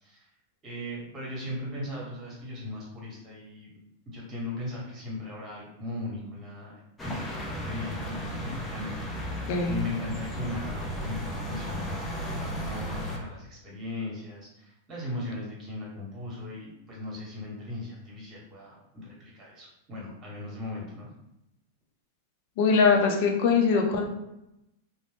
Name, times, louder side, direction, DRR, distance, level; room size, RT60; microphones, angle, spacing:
voice 1, 0.6-3.7 4.1-6.7 7.0-12.1 12.3-21.1, left 2 dB, 30° right, -4 dB, 1.3 m, -38 dB
sound 1, 7.0-13.2, equal, 10° left, 0.6 m, -35 dB
voice 2, 9.5-9.8 22.6-24.0, left 5 dB, 60° left, 2 dB, 0.5 m, -22 dB
2.5 x 2.1 x 3.3 m, 0.86 s
hypercardioid pair, 120°, 0 cm